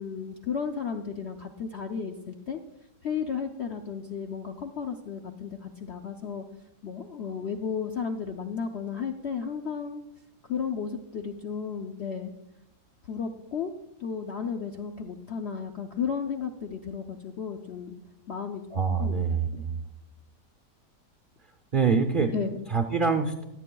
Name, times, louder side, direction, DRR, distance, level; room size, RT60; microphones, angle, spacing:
voice 1, 0.0-2.6 3.0-6.4 6.8-10.0 10.5-12.3 13.1-13.7 14.0-18.0 18.3-18.6 19.0-19.2 19.5-19.6 22.3-22.6, left 6 dB, 60° left, 3 dB, 0.7 m, -33 dB
voice 2, 18.7-19.8 21.7-22.3 22.7-23.4, right 5 dB, 50° right, 4 dB, 0.6 m, -25 dB
23.0 x 8.3 x 2.3 m, 0.90 s
omnidirectional pair, 1.8 m